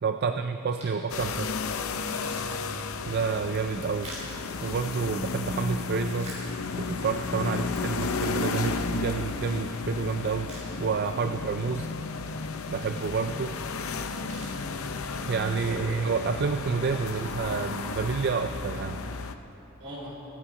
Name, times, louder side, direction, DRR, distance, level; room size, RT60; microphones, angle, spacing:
voice 1, 0.0-1.5 3.1-4.1 4.6-6.4 6.7-10.5 10.8-11.9 12.7-13.6 15.3-19.0, right 5 dB, 50° right, 8 dB, 0.4 m, -29 dB
sound 1, 0.7-1.2 1.6-1.7 2.0-5.2 5.7-7.0 7.5-7.6 8.3-9.7 10.1-10.2 10.4-11.3 11.6-11.7 13.7-13.8 14.0-15.2 15.8-16.1 16.6-17.9, right 1 dB, 35° right, 3.8 m, -47 dB
sound 2, 1.1-19.3, left 4 dB, 75° left, 0.7 m, -33 dB
voice 2, 2.1-2.4 11.1-11.3 14.4-14.8 15.5-16.0 19.8-20.1, right 1 dB, 75° right, -4 dB, 4.1 m, -41 dB
24.5 x 8.6 x 5.0 m, 2.9 s
head